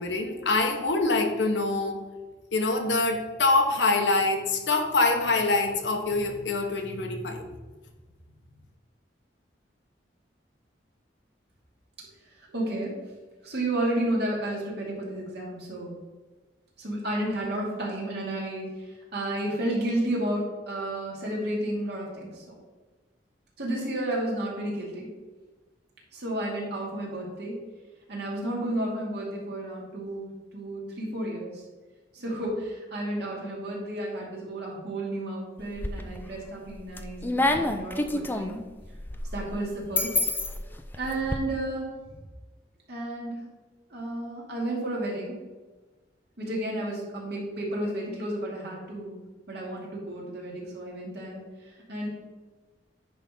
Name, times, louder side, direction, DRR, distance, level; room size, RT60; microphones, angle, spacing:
voice 1, 0.0-2.0 2.5-7.5, left 3 dB, 80° left, 4 dB, 1.1 m, -25 dB
voice 2, 12.4-13.0 13.4-15.9 16.8-22.6 23.6-25.1 26.1-27.6 28.1-31.6 32.1-38.6 39.3-40.2 41.0-41.9 42.9-43.4 43.9-45.4 46.4-49.2 49.5-52.1, right 1 dB, 65° right, -4 dB, 2.6 m, -32 dB
sound 1, 35.6-36.3 36.7-41.4, left 2 dB, 10° left, 0.5 m, -28 dB
9.7 x 3.6 x 5.5 m, 1.3 s
head